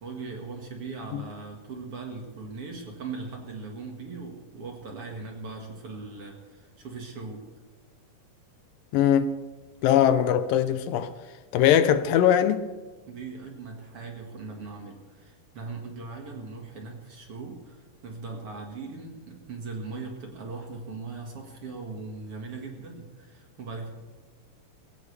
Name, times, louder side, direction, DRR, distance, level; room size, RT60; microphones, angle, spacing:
voice 1, 0.0-7.5 13.1-23.9, right 4 dB, 50° right, 2.3 m, -39 dB
voice 2, 8.9-9.3 9.8-11.1 11.5-12.6, left 10 dB, 80° left, 2.4 m, -21 dB
21.0 x 16.0 x 3.3 m
omnidirectional pair, 4.1 m